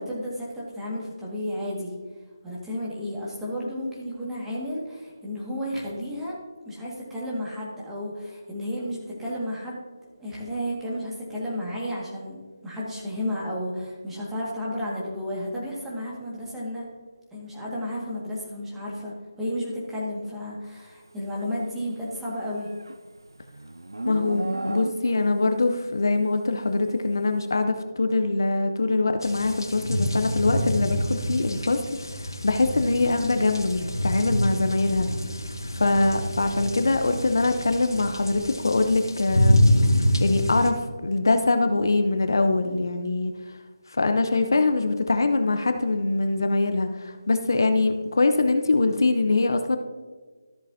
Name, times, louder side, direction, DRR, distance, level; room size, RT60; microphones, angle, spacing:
voice 1, 0.0-1.9 2.4-6.4 6.7-16.9 17.3-22.7, equal, 5° right, -6 dB, 1.8 m, -32 dB
Livestock farm animals working animals, 22.1-25.4, right 1 dB, 80° right, 0.4 m, -34 dB
voice 2, 24.0-31.8 32.2-35.1 35.7-39.7 40.2-43.3 43.9-49.8, left 3 dB, 60° left, 7 dB, 0.7 m, -23 dB
sound 1, 29.2-40.7, left 1 dB, 80° left, 1.3 m, -26 dB
13.5 x 7.2 x 2.7 m, 1.4 s
figure-of-eight pair, 155°, 2 cm